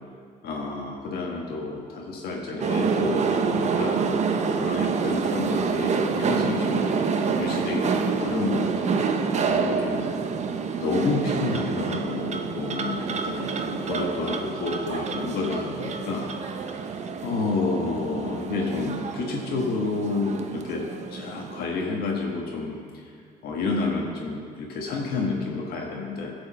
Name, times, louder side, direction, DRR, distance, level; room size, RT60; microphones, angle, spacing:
voice 1, 0.4-4.0 4.6-6.9 7.3-9.0 9.5-10.1 10.8-16.6 17.2-20.8 21.1-22.8 23.4-26.3, left 3 dB, 65° left, -1 dB, 1.3 m, -29 dB
sound 1, 2.6-21.7, right 5 dB, 40° right, 0.7 m, -27 dB
13.0 x 4.9 x 7.2 m, 2.2 s
cardioid pair, 110°, 17 cm